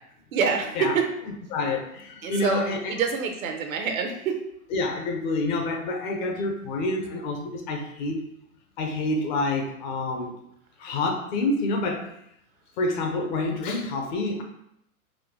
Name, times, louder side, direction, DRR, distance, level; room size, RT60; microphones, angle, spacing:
voice 1, 0.3-1.1 2.2-2.6 2.9-4.4, right 6 dB, 70° right, 4 dB, 0.8 m, -26 dB
voice 2, 1.5-2.9 4.7-8.2 8.8-10.4 10.8-12.1 12.8-14.4, left 2 dB, 35° left, 2 dB, 0.5 m, -27 dB
4.1 x 2.2 x 2.8 m, 0.75 s
hypercardioid pair, 115°, 44 cm